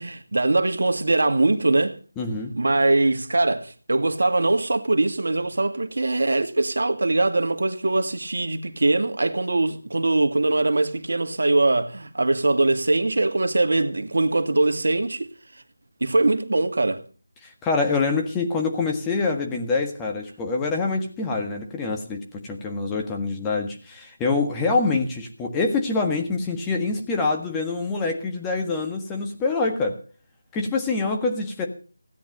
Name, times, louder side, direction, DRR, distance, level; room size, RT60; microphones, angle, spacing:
voice 1, 0.0-2.0 2.6-15.3 16.0-17.0, right 2 dB, 65° right, 1.9 m, -22 dB
voice 2, 2.2-2.5 17.4-30.0 30.5-31.7, left 3 dB, 10° left, 1.6 m, -25 dB
16.5 x 10.0 x 6.7 m
figure-of-eight pair, 170°, 0 cm